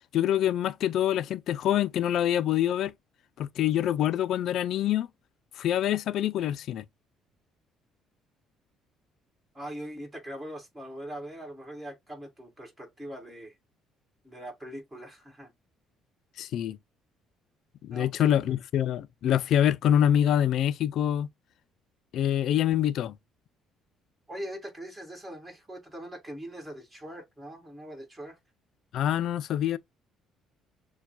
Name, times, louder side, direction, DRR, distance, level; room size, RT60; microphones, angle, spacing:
voice 1, 0.1-2.9 3.4-5.1 5.6-6.8 16.4-16.8 17.8-21.3 22.1-23.1 28.9-29.8, left 11 dB, 65° left, 0.4 m, -25 dB
voice 2, 9.5-13.5 14.2-15.5 17.9-18.5 24.3-28.4, equal, 15° right, 2.3 m, -41 dB
6.9 x 2.3 x 2.3 m
cardioid pair, 105°, 0 cm